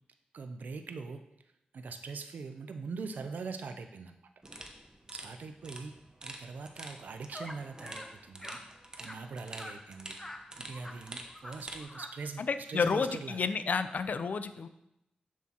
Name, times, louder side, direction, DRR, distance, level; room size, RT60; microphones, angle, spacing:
voice 1, 0.3-1.3 1.7-4.2 5.1-8.6 9.0-10.2 10.6-13.4, right 4 dB, 80° right, 7 dB, 0.5 m, -42 dB
sound 1, 4.4-11.9, right 1 dB, 25° right, 0.9 m, -48 dB
sound 2, 7.3-7.6 7.8-8.1 8.4-8.6 9.0-9.2 9.6-9.8 10.2-10.4 10.7-10.9 11.2-11.5 11.8-12.1, left 1 dB, 15° left, 0.8 m, -45 dB
voice 2, 12.4-14.7, left 5 dB, 65° left, 11 dB, 0.4 m, -31 dB
7.2 x 6.2 x 2.9 m, 0.84 s
cardioid pair, 60°, 3 cm